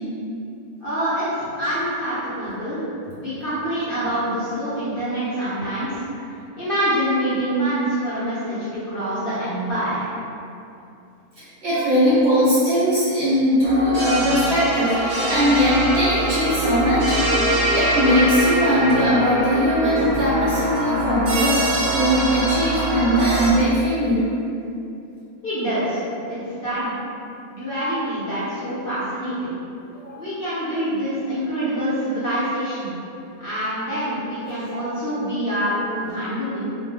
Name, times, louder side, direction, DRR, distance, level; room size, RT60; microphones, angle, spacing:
voice 1, 0.8-2.8 3.2-5.9 6.6-10.1 25.4-26.0 26.3-26.9 27.5-29.6 30.2-32.9 33.4-36.7, right 1 dB, 50° left, -12 dB, 0.7 m, -25 dB
voice 2, 11.4-17.2 17.7-21.6 21.9-24.3 30.0-30.1, equal, 55° right, -10 dB, 0.8 m, -20 dB
sound 1, 13.6-23.5, right 1 dB, 85° right, 1.1 m, -23 dB
2.4 x 2.1 x 3.2 m, 2.7 s
omnidirectional pair, 1.5 m